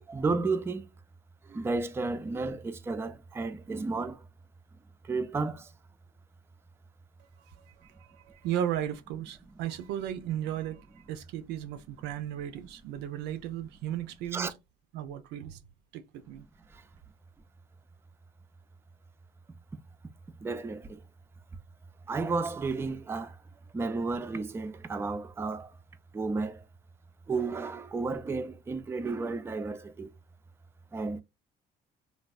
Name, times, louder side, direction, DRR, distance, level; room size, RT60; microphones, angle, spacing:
voice 1, 0.1-0.9 1.5-4.2 5.1-5.7 14.3-14.5 20.4-21.0 22.1-23.4 23.7-25.7 26.1-26.6 27.3-30.1 30.9-31.2, right 3 dB, 15° right, 0.3 m, -32 dB
voice 2, 8.0-14.5 14.9-15.6 15.9-16.4, right 10 dB, 90° right, 0.5 m, -35 dB
3.3 x 2.3 x 2.4 m
cardioid pair, 110°, 17 cm